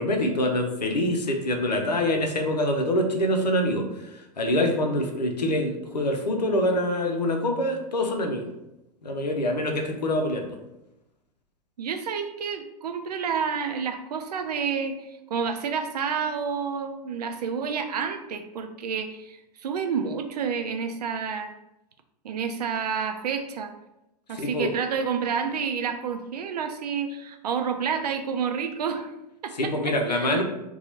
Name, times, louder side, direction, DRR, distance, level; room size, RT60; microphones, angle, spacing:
voice 1, 0.0-8.5 9.0-10.4 24.3-24.7 29.6-30.4, left 1 dB, 90° left, 3 dB, 0.6 m, -25 dB
voice 2, 11.8-21.5 22.2-23.7 24.3-29.1 29.4-30.4, right 6 dB, 75° right, 6 dB, 0.5 m, -29 dB
2.9 x 2.3 x 4.0 m, 0.92 s
hypercardioid pair, 95°, 21 cm